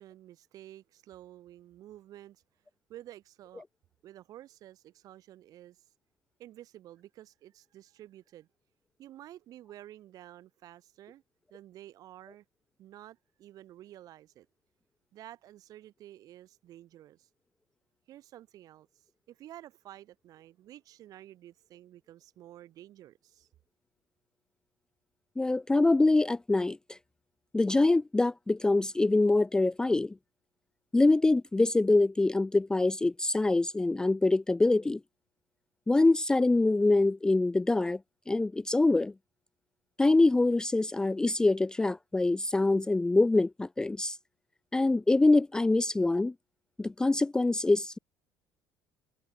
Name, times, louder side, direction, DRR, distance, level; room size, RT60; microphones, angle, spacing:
voice 1, 0.0-2.4 2.9-3.6 4.0-5.8 6.4-8.5 9.0-11.2 11.5-12.4 12.8-14.5 15.1-17.3 18.1-23.5, right 13 dB, 55° right, 6.9 m, -51 dB
voice 2, 25.4-27.0 27.5-30.1 30.9-35.0 35.9-38.0 38.3-39.1 40.0-44.2 44.7-46.3 46.8-48.0, left 2 dB, 10° left, 0.4 m, -25 dB
cardioid pair, 115°, 7 cm